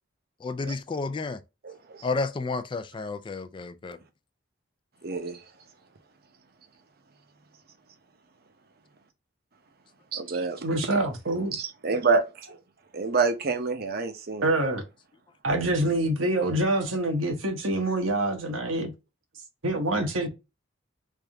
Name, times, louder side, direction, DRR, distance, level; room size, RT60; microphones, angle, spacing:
voice 1, 0.4-1.4 2.0-4.0, left 3 dB, 25° left, 0.3 m, -31 dB
voice 2, 1.6-2.1 5.0-5.4 10.1-10.6 11.5-12.6 12.9-14.5, right 4 dB, 50° right, 0.7 m, -27 dB
voice 3, 10.3-11.6 14.4-14.8 15.4-18.9 19.6-20.3, right 1 dB, 90° right, 1.1 m, -26 dB
3.5 x 2.6 x 3.4 m
head